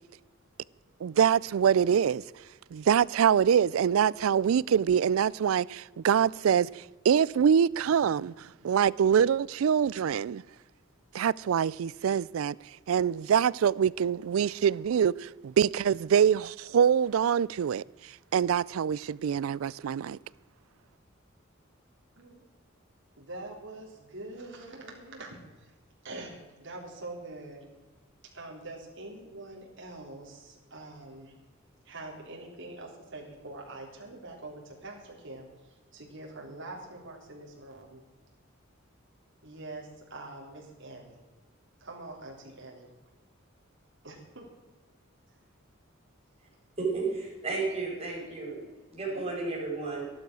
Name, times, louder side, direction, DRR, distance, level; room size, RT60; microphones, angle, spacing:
voice 1, 1.0-2.2 2.7-10.4 11.1-12.5 12.9-17.8 18.3-20.2, right 8 dB, 85° right, 0.4 m, -25 dB
voice 2, 23.2-25.7 26.0-27.6 28.2-31.3 31.8-38.0 39.4-41.2 41.8-42.9 44.0-44.5, right 2 dB, 65° right, 3.7 m, -44 dB
voice 3, 46.8-48.6 48.9-50.0, right 3 dB, 30° right, 5.6 m, -32 dB
13.0 x 12.0 x 6.2 m
head